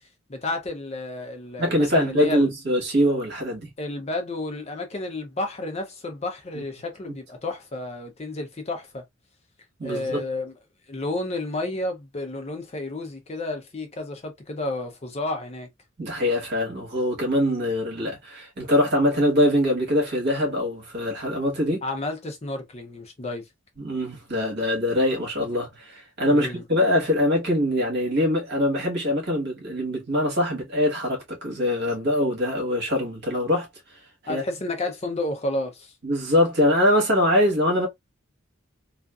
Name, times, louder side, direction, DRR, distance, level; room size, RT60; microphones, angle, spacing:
voice 1, 0.3-2.5 3.8-9.0 9.8-10.5 10.9-15.7 21.8-23.4 26.3-26.6 34.3-35.9, left 2 dB, 30° left, 0.6 m, -31 dB
voice 2, 1.6-3.7 9.8-10.2 16.0-21.8 23.8-33.7 34.2-34.4 36.0-37.9, left 1 dB, 55° right, 1.2 m, -23 dB
2.5 x 2.4 x 2.3 m
head